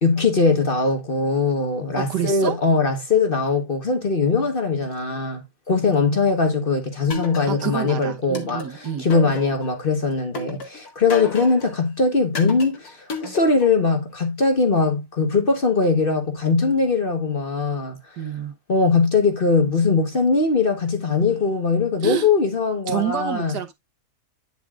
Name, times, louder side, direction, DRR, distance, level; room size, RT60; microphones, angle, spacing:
voice 1, 0.0-18.0 18.7-23.6, left 4 dB, 35° left, 1.3 m, -21 dB
voice 2, 2.0-2.6 5.7-6.3 7.5-9.1 18.2-18.5 22.0-22.3 22.9-23.7, right 8 dB, 75° right, 1.7 m, -28 dB
sound 1, 7.1-7.9 8.4-9.8 10.4-11.8 12.4-13.8, left 3 dB, 65° left, 2.2 m, -32 dB
9.5 x 7.4 x 2.4 m
omnidirectional pair, 1.8 m